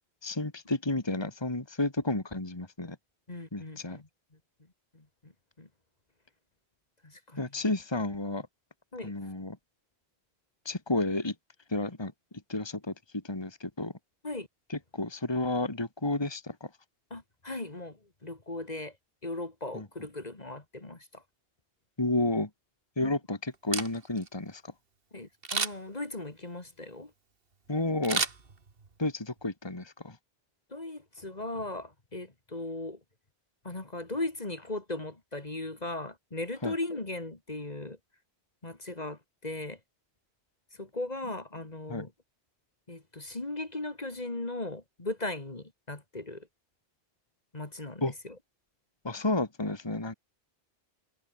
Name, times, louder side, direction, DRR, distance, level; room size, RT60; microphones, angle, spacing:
voice 1, 0.2-3.0 3.5-4.0 7.4-8.5 9.0-9.6 10.7-11.3 11.7-12.1 12.5-13.9 14.7-16.7 19.7-19.9 22.0-22.5 23.0-24.7 27.7-28.2 29.0-30.2 36.6-36.8 41.9-42.1 48.0-48.1 49.0-50.1, left 2 dB, 25° left, 2.2 m, -31 dB
voice 2, 3.3-4.1 4.9-5.3 5.6-5.7 7.0-7.4 8.9-9.1 14.2-14.5 17.1-18.9 19.2-21.2 23.0-23.1 25.1-27.1 30.7-33.0 33.6-38.0 38.6-39.8 40.8-42.1 42.9-46.5 47.5-48.3, left 2 dB, 40° left, 2.4 m, -38 dB
Camera, 23.5-24.3 25.4-26.0 28.0-29.0 29.4-29.5, right 4 dB, 60° right, 2.1 m, -32 dB
omnidirectional pair, 1.1 m